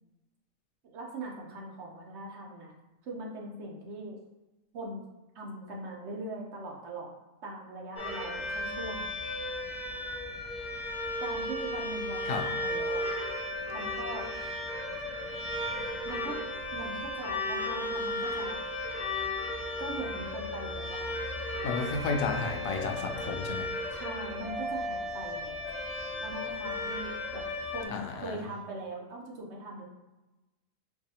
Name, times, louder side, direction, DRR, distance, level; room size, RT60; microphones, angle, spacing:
voice 1, 0.8-2.7 3.0-4.2 4.7-5.0 5.3-7.2 7.4-9.1 11.2-13.0 13.7-14.3 16.0-16.4 16.7-18.6 19.8-21.2 23.9-25.5 26.2-29.8, right 2 dB, 60° right, -1 dB, 0.9 m, -41 dB
sound 1, 8.0-27.9, left 1 dB, 35° left, 0.8 m, -35 dB
voice 2, 21.6-23.7 27.9-28.4, left 4 dB, 85° left, 3 dB, 1.0 m, -32 dB
4.6 x 2.3 x 2.8 m, 1.1 s
omnidirectional pair, 1.4 m